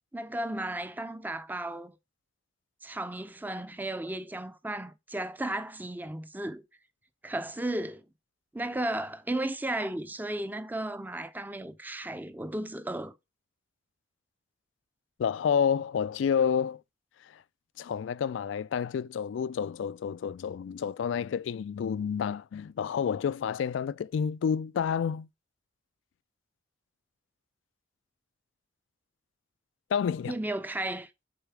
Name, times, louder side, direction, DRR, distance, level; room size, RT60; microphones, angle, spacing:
voice 1, 0.1-2.0 2.8-6.6 7.2-8.0 8.5-13.2 30.3-31.1, right 1 dB, 10° right, 0.5 m, -34 dB
voice 2, 15.2-16.8 17.3-17.4 17.8-25.3 29.9-30.3, left 7 dB, 70° left, 0.3 m, -29 dB
6.9 x 4.1 x 4.7 m
head